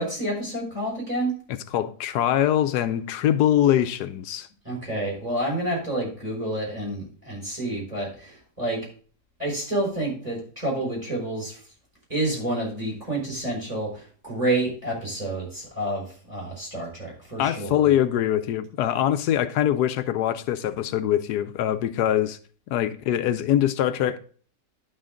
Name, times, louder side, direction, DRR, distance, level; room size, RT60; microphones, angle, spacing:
voice 1, 0.0-1.3 4.6-8.8 9.4-11.6 12.1-17.9, right 1 dB, 25° right, 5.9 m, -29 dB
voice 2, 1.5-4.5 17.4-22.4 22.7-24.2, left 11 dB, 85° left, 1.2 m, -23 dB
11.0 x 6.4 x 3.8 m
omnidirectional pair, 1.7 m